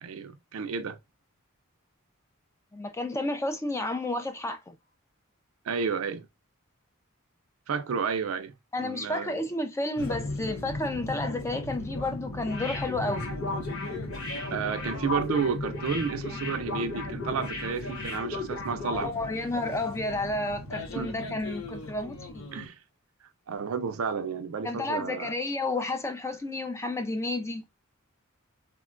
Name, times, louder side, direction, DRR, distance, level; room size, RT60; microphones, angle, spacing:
voice 1, 0.0-1.0 5.7-6.3 7.7-8.5 8.8-9.4 14.5-19.1 20.9-21.1 22.5-22.8 23.5-25.3, right 6 dB, 80° right, 0.4 m, -31 dB
voice 2, 2.7-4.8 8.7-13.3 18.9-22.5 24.6-27.6, left 2 dB, 15° left, 0.3 m, -31 dB
sound 1, 10.0-22.7, left 2 dB, 70° left, 0.7 m, -38 dB
sound 2, 12.4-19.1 19.4-19.5, left 3 dB, 90° left, 1.2 m, -36 dB
3.6 x 2.2 x 2.4 m
head